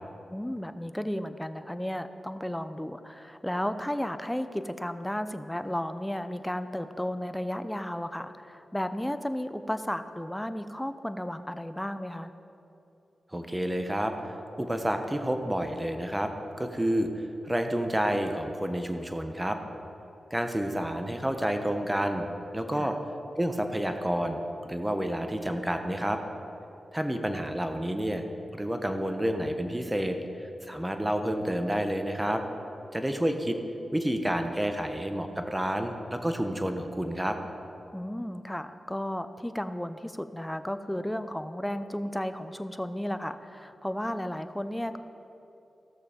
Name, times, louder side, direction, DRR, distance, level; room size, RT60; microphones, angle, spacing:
voice 1, 0.3-12.3 22.8-22.9 37.9-45.0, equal, 10° left, 11 dB, 0.7 m, -33 dB
voice 2, 13.3-16.3 16.6-19.6 20.3-22.3 22.5-23.0 23.4-26.2 26.9-28.2 28.5-32.4 32.9-33.6 33.9-37.4, equal, 15° right, 6 dB, 1.3 m, -29 dB
15.5 x 6.7 x 5.2 m, 2.8 s
supercardioid pair, 40°, 0 cm